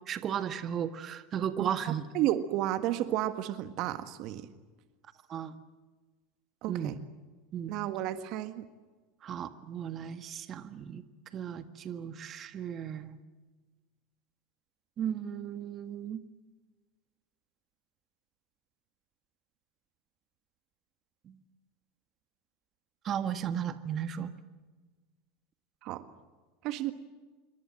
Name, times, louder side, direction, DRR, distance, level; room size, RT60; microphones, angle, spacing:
voice 1, 0.1-2.1 5.3-5.5 6.7-7.0 7.5-7.8 9.2-11.0 11.3-13.2 15.0-16.2 21.3-21.4 23.0-24.3, right 9 dB, 40° right, 10 dB, 1.7 m, -35 dB
voice 2, 2.1-4.5 6.6-7.0 7.7-8.7 25.8-26.0 26.6-26.9, right 13 dB, 55° right, 10 dB, 1.6 m, -32 dB
27.5 x 24.0 x 7.7 m, 1.3 s
hypercardioid pair, 85°, 0 cm